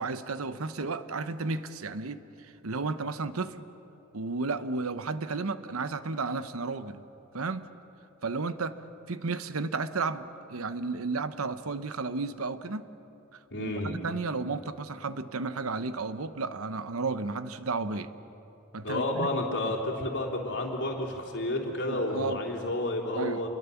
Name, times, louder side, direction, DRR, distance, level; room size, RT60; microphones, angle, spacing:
voice 1, 0.0-2.2 2.6-3.6 4.1-7.0 7.3-7.7 8.2-8.8 9.1-12.9 13.3-18.2 18.7-19.7 21.9-22.4 23.1-23.4, right 3 dB, 85° right, 12 dB, 0.9 m, -33 dB
voice 2, 13.5-14.0 18.8-23.5, left 1 dB, 60° left, 0 dB, 3.7 m, -31 dB
28.5 x 22.0 x 7.2 m, 3.0 s
head